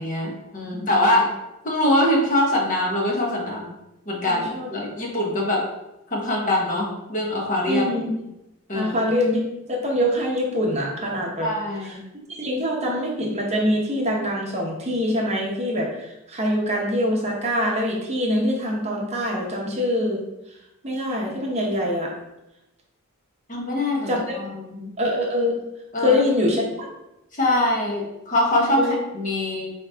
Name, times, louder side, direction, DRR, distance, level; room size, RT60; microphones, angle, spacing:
voice 1, 0.0-1.3 1.6-3.7 4.1-5.7 6.1-7.8 8.7-8.9 11.4-12.0 23.5-24.9 25.9-26.2 27.3-29.7, left 1 dB, 35° left, -2 dB, 0.9 m, -23 dB
voice 2, 4.3-4.7 7.7-8.1 8.7-9.4 9.7-11.5 12.3-20.2 20.8-22.1 24.1-24.3 25.0-25.6 26.0-26.9 28.8-29.0, left 1 dB, 30° right, -2 dB, 0.8 m, -24 dB
4.7 x 2.9 x 3.4 m, 0.89 s
head